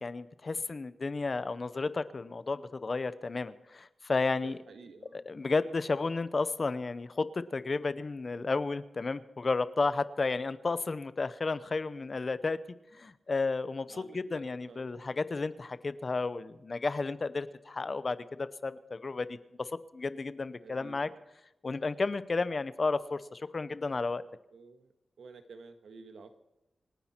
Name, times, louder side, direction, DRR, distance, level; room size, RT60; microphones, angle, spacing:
voice 1, 0.0-4.6 5.1-12.6 12.9-21.1 21.6-24.2, left 3 dB, 35° left, 15 dB, 0.7 m, -32 dB
voice 2, 4.4-5.2 13.9-15.1 20.6-21.2 24.5-24.9 25.2-26.3, right 4 dB, 80° right, 7 dB, 1.6 m, -52 dB
27.0 x 10.0 x 4.4 m, 0.92 s
wide cardioid pair, 180°, 0 cm